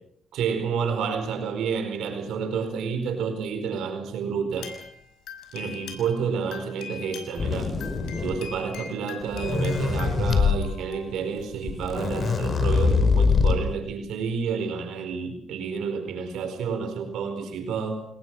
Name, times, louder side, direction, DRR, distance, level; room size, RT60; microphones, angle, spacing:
voice 1, 0.3-4.7 5.5-7.7 8.2-18.1, right 6 dB, 80° right, 6 dB, 4.8 m, -30 dB
sound 1, 4.6-6.2 6.5-11.6 12.4-12.5 12.9-13.0, left 7 dB, 85° left, 6.2 m, -42 dB
sound 2, 7.4-8.6 9.2-10.6 11.4-11.5 11.7-13.7, left 5 dB, 40° left, 5.2 m, -23 dB
29.5 x 21.0 x 6.3 m, 0.68 s
cardioid pair, 100°, 0 cm